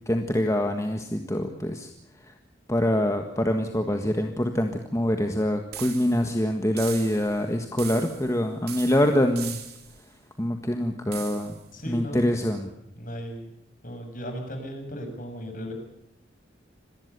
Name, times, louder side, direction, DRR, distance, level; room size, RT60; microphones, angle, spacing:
voice 1, 0.1-1.9 2.7-9.6 10.4-11.5 11.9-12.7, left 1 dB, 15° left, 5 dB, 1.6 m, -25 dB
sound 1, 5.7-6.3 6.8-7.4 7.8-8.4 8.7-10.0 11.1-11.6, right 10 dB, 55° right, 3.5 m, -40 dB
voice 2, 11.7-12.4 12.9-13.5 13.8-15.7, equal, 45° left, 5 dB, 6.7 m, -36 dB
26.0 x 19.5 x 6.9 m, 0.81 s
head